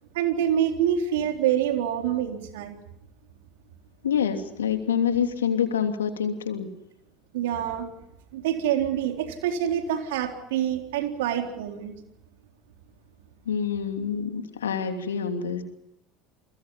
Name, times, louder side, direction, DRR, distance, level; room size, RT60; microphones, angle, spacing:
voice 1, 0.1-2.8 7.3-7.9 8.3-11.9, right 10 dB, 70° right, 4 dB, 3.9 m, -26 dB
voice 2, 4.0-6.7 13.5-15.6, left 7 dB, 85° left, 6 dB, 2.9 m, -26 dB
29.5 x 23.0 x 5.7 m, 0.83 s
hypercardioid pair, 70°, 0 cm